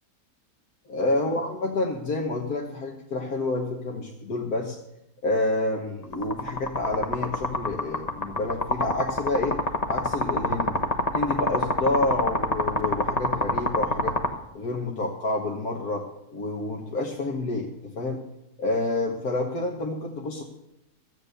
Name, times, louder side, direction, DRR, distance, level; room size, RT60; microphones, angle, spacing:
voice 1, 0.9-4.8 5.2-9.6 9.9-10.8 11.1-14.2 14.5-18.2 18.6-20.4, left 2 dB, 70° left, 0 dB, 1.9 m, -28 dB
sound 1, 6.1-14.3, left 1 dB, 25° left, 1.3 m, -25 dB
14.0 x 9.1 x 6.7 m, 0.90 s
omnidirectional pair, 1.7 m